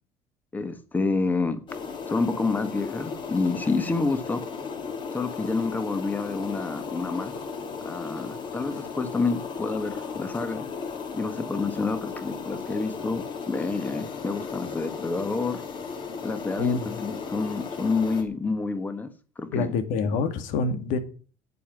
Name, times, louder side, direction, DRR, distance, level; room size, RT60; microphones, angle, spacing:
voice 1, 0.5-1.6 2.1-4.4 5.1-7.3 7.8-10.6 11.1-15.6 16.2-19.7, left 3 dB, 15° left, 1.3 m, -28 dB
sound 1, 1.7-18.2, left 5 dB, 35° left, 2.7 m, -35 dB
voice 2, 19.5-21.0, left 4 dB, 80° left, 2.2 m, -26 dB
9.3 x 8.3 x 9.3 m
cardioid pair, 175°, 13 cm